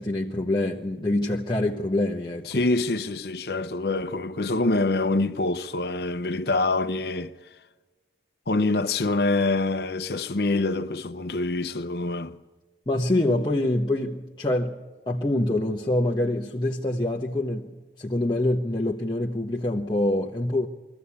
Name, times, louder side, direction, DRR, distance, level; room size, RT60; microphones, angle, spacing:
voice 1, 0.0-2.6 12.9-14.8 15.1-17.7 18.0-20.7, left 1 dB, 25° left, 1.0 m, -25 dB
voice 2, 2.4-7.3 8.5-12.4, left 2 dB, 60° left, 0.8 m, -25 dB
23.0 x 14.5 x 8.5 m
head